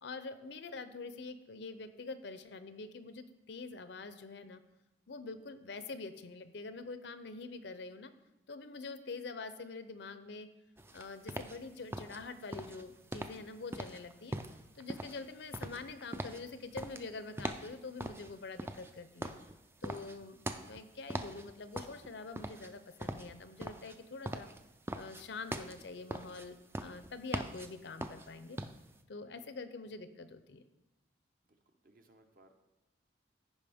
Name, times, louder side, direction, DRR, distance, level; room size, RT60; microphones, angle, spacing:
voice 1, 0.0-4.6 5.1-8.1 8.5-10.5 10.9-14.4 14.7-19.3 19.8-24.5 24.9-28.6 29.1-30.6, left 3 dB, 65° left, 11 dB, 0.6 m, -45 dB
sound 1, 10.8-29.0, right 1 dB, 15° right, 0.3 m, -43 dB
voice 2, 29.1-29.6 31.5-32.5, right 1 dB, 50° right, 5 dB, 0.9 m, -66 dB
14.5 x 5.1 x 3.5 m, 0.96 s
head